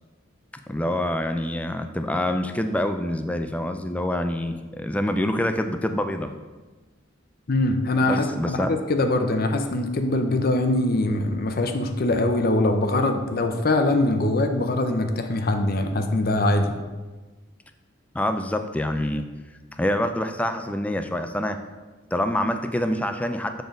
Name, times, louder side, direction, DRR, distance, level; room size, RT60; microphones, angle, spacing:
voice 1, 0.7-6.3 8.0-8.7 18.1-19.2 19.8-21.6 22.1-23.6, left 1 dB, 5° left, 7 dB, 0.3 m, -26 dB
voice 2, 7.5-16.7, left 2 dB, 50° left, 6 dB, 0.6 m, -23 dB
6.9 x 3.9 x 5.2 m, 1.3 s
head